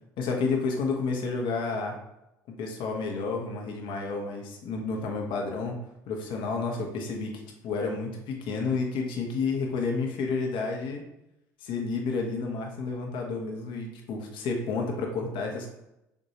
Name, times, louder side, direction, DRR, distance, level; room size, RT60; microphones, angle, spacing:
voice 1, 0.2-2.0 2.6-5.8 6.1-7.3 7.6-11.0 11.6-15.7, left 4 dB, 55° left, 1 dB, 1.0 m, -30 dB
7.1 x 2.6 x 2.9 m, 0.86 s
hypercardioid pair, 60°, 10 cm